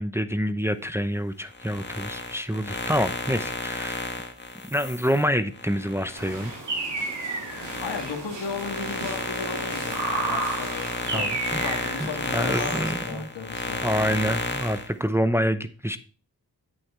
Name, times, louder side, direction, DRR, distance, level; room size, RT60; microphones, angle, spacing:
voice 1, 0.0-4.1 4.6-6.5 11.1-11.6 12.0-13.3 13.8-16.0, equal, 5° right, 10 dB, 0.7 m, -27 dB
sound 1, 1.5-6.6 7.0-14.9, left 2 dB, 25° left, 1.7 m, -32 dB
sound 2, 6.2-12.8, right 3 dB, 85° right, 2.9 m, -32 dB
voice 2, 7.8-13.8, left 5 dB, 75° left, 3 dB, 1.9 m, -35 dB
8.7 x 7.7 x 3.3 m, 0.38 s
cardioid pair, 40°, 41 cm